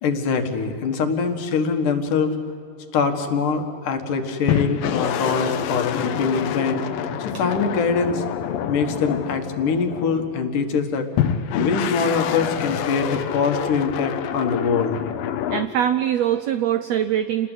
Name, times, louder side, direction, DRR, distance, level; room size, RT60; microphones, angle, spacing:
voice 1, 0.0-2.4 2.9-6.8 7.2-8.2 8.7-11.1 11.5-15.0, left 5 dB, 70° left, 6 dB, 3.2 m, -23 dB
sound 1, 4.5-10.4 11.2-15.7, left 9 dB, 90° left, 2.8 m, -27 dB
voice 2, 15.5-17.5, right 10 dB, 85° right, 11 dB, 1.5 m, -22 dB
28.5 x 20.0 x 8.2 m, 2.7 s
omnidirectional pair, 3.9 m